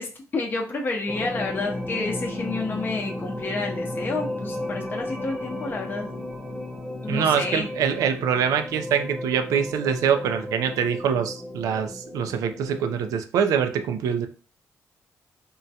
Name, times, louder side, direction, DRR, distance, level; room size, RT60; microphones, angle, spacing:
voice 1, 0.0-6.1 7.0-7.7, left 3 dB, 35° left, 0 dB, 0.6 m, -30 dB
sound 1, 1.1-13.1, left 1 dB, 5° right, 0.8 m, -34 dB
voice 2, 7.1-14.3, right 7 dB, 85° right, 8 dB, 0.4 m, -24 dB
3.6 x 2.2 x 2.7 m, 0.38 s
cardioid pair, 95°, 6 cm